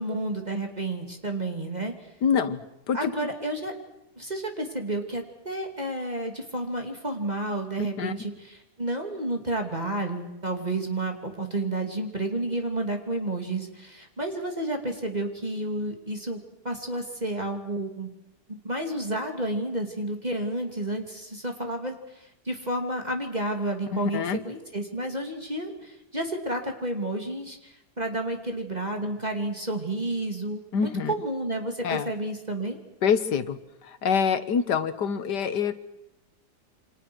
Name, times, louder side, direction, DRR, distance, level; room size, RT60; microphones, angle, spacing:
voice 1, 0.0-2.1 2.9-3.7 4.2-16.4 16.6-18.1 18.5-32.8, right 1 dB, 25° right, 4 dB, 2.8 m, -31 dB
voice 2, 2.2-2.6 2.9-3.3 7.8-8.1 23.9-24.4 30.7-31.1 31.8-32.1 33.0-35.7, left 6 dB, 80° left, 12 dB, 1.9 m, -26 dB
29.0 x 25.5 x 6.3 m, 0.87 s
omnidirectional pair, 1.8 m